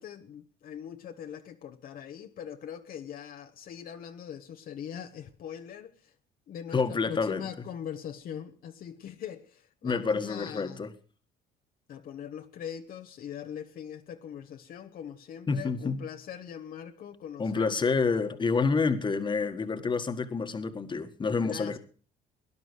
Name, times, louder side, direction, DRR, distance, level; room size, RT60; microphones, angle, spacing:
voice 1, 0.0-6.1 6.5-10.8 11.9-18.0 21.4-21.8, left 9 dB, 55° left, 1.2 m, -41 dB
voice 2, 6.7-7.4 9.8-10.9 15.5-16.0 17.4-21.8, left 4 dB, 30° left, 1.7 m, -28 dB
18.0 x 11.0 x 6.4 m
cardioid pair, 110°, 17 cm